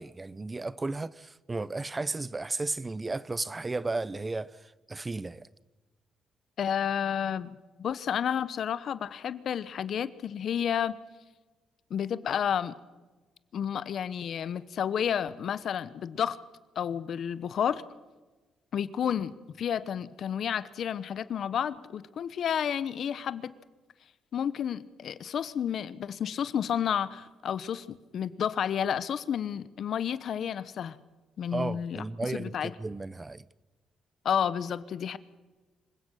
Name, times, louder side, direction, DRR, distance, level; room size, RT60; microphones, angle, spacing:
voice 1, 0.0-5.5 31.5-33.4, right 3 dB, 20° right, 0.6 m, -34 dB
voice 2, 6.6-11.0 11.9-12.7 13.5-16.4 16.7-17.8 18.7-23.5 24.3-31.0 31.4-32.7 34.2-35.2, left 8 dB, 60° left, 1.1 m, -31 dB
26.5 x 16.5 x 6.5 m
cardioid pair, 90°, 0 cm